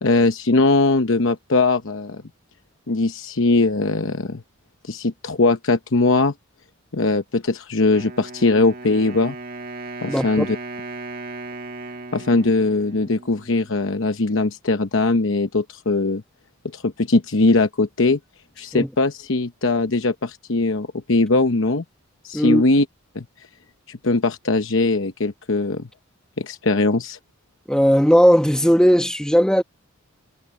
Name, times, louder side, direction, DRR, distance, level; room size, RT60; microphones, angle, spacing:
voice 1, 0.0-2.2 2.9-4.4 4.8-6.3 6.9-9.4 10.0-10.6 12.1-16.2 16.7-18.2 18.6-21.8 22.2-22.8 23.1-23.2 23.9-25.9 26.4-27.2, left 3 dB, 65° left, 0.9 m, -20 dB
Wind instrument woodwind instrument, 7.9-13.9, right 3 dB, 45° right, 1.9 m, -36 dB
voice 2, 10.1-10.4 18.7-18.9 22.3-22.6 27.7-29.6, equal, 5° left, 1.2 m, -17 dB
head